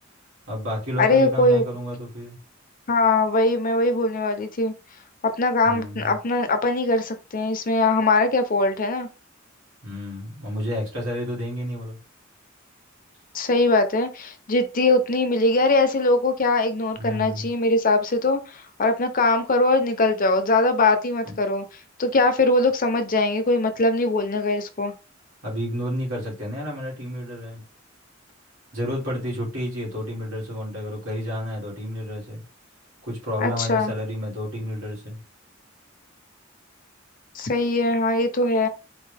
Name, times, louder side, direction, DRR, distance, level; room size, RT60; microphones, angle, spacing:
voice 1, 0.5-2.4 5.6-6.1 9.8-12.0 17.0-17.5 21.2-21.4 25.4-27.6 28.7-32.4 33.0-35.2, equal, 85° right, 2.5 m, -30 dB
voice 2, 1.0-1.6 2.9-4.7 5.4-9.1 13.3-21.6 22.0-24.9 33.4-33.9 37.3-38.7, left 2 dB, 45° left, 0.7 m, -21 dB
4.4 x 2.6 x 3.4 m
head